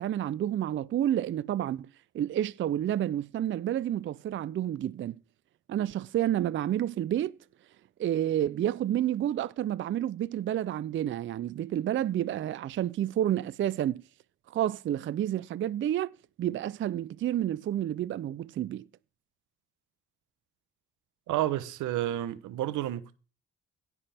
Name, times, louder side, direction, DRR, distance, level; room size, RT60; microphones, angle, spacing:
voice 1, 0.0-1.9 2.1-5.2 5.7-7.4 8.0-14.0 14.5-16.1 16.4-18.9, right 11 dB, 40° right, 0.4 m, -30 dB
voice 2, 21.3-23.2, right 13 dB, 85° right, 0.8 m, -30 dB
17.5 x 6.0 x 3.4 m
cardioid pair, 90°, 30 cm